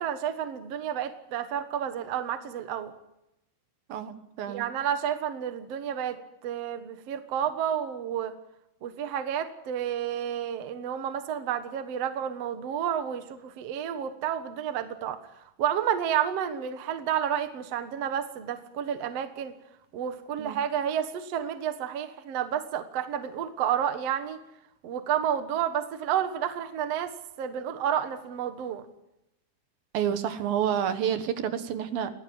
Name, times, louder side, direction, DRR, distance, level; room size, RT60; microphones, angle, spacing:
voice 1, 0.0-2.9 4.5-8.3 8.8-15.2 15.6-19.5 19.9-24.4 24.8-28.8, right 9 dB, 55° right, 9 dB, 1.9 m, -30 dB
voice 2, 3.9-4.7 20.4-20.6 29.9-32.1, right 9 dB, 70° right, 9 dB, 3.1 m, -29 dB
21.5 x 16.5 x 8.8 m, 0.88 s
omnidirectional pair, 4.4 m